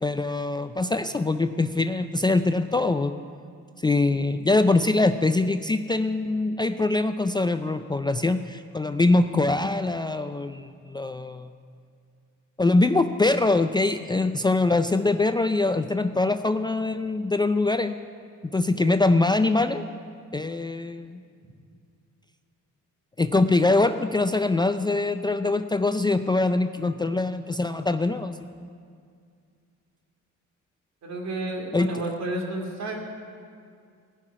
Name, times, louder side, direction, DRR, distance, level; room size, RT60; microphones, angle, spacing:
voice 1, 0.0-3.1 3.8-11.5 12.6-17.9 18.5-19.8 20.3-21.2 23.2-28.7 31.7-31.9, left 2 dB, 15° left, 9 dB, 0.4 m, -23 dB
voice 2, 31.0-33.0, right 1 dB, 60° right, 1 dB, 2.5 m, -31 dB
15.5 x 5.8 x 9.8 m, 2.2 s
cardioid pair, 90°, 30 cm